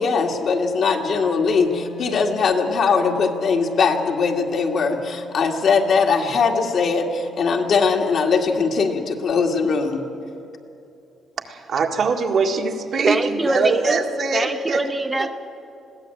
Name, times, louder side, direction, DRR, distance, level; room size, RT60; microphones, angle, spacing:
voice 1, 0.0-10.0, left 5 dB, 60° left, 2 dB, 2.0 m, -20 dB
Wind instrument woodwind instrument, 1.2-8.2, left 2 dB, 80° left, 5.2 m, -43 dB
voice 2, 11.5-14.8 15.2-15.3, right 4 dB, 60° right, 2 dB, 1.9 m, -22 dB
voice 3, 13.1-14.0 14.3-15.3, right 2 dB, 15° right, 5 dB, 0.8 m, -23 dB
21.0 x 16.0 x 7.9 m, 2.7 s
cardioid pair, 90°, 0 cm